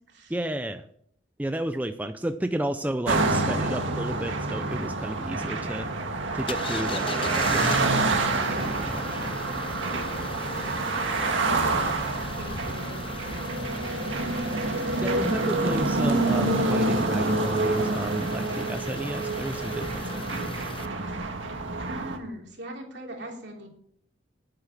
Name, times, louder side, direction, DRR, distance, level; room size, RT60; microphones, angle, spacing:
voice 1, 0.3-0.8 1.4-5.9 6.3-7.5 8.3-9.4 15.0-20.5, right 1 dB, 10° right, 8 dB, 0.4 m, -32 dB
sound 1, 3.1-22.2, right 2 dB, 80° right, 1.8 m, -27 dB
sound 2, 6.5-20.9, left 4 dB, 30° left, 0.7 m, -39 dB
voice 2, 10.6-13.0 21.8-23.7, right 2 dB, 60° right, 0 dB, 3.2 m, -39 dB
11.0 x 8.9 x 5.9 m, 0.67 s
head